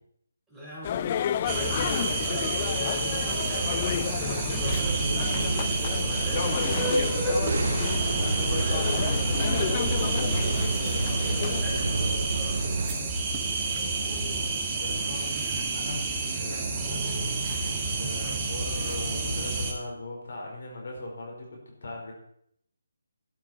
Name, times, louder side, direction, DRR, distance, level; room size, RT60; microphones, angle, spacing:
voice 1, 0.5-5.6 6.0-10.4 11.4-12.6, equal, 5° right, -9 dB, 5.2 m, -40 dB
sound 1, 0.8-11.6, left 10 dB, 30° left, 0.3 m, -32 dB
sound 2, 1.5-19.7, right 3 dB, 20° right, 2.0 m, -29 dB
sound 3, 4.6-12.9, right 3 dB, 65° right, 1.0 m, -30 dB
voice 2, 12.3-13.0 13.8-15.3 15.7-16.1 16.4-17.1 17.6-22.1, left 2 dB, 60° left, -1 dB, 5.1 m, -40 dB
12.5 x 11.0 x 4.5 m, 0.71 s
figure-of-eight pair, 155°, 0 cm